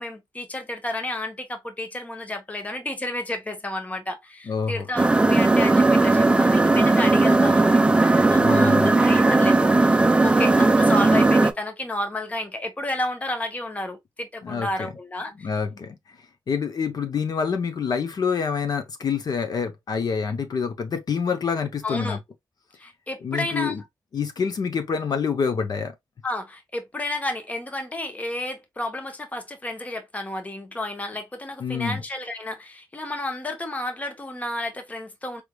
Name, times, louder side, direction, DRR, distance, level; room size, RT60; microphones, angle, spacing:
voice 1, 0.0-7.8 8.1-15.5 21.8-22.2 22.8-23.8 26.2-35.4, left 1 dB, 20° left, 0.9 m, -31 dB
voice 2, 4.5-4.9 8.4-8.9 14.4-14.9 15.4-16.2 16.5-22.2 23.2-23.8 24.1-25.9 31.6-32.0, left 6 dB, 55° left, 0.8 m, -27 dB
sound 1, 5.0-11.5, right 2 dB, 15° right, 0.5 m, -17 dB
4.8 x 3.4 x 2.3 m
wide cardioid pair, 165°, 8 cm